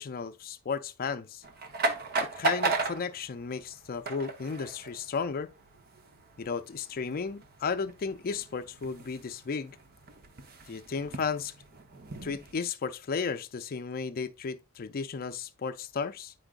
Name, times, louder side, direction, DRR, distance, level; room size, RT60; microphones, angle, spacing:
voice 1, 0.0-1.4 2.2-5.5 6.4-9.8 10.7-11.5 12.2-16.3, left 5 dB, 40° left, 0.4 m, -34 dB
sound 1, 1.4-12.6, right 3 dB, 45° right, 0.8 m, -36 dB
8.8 x 4.9 x 2.4 m
head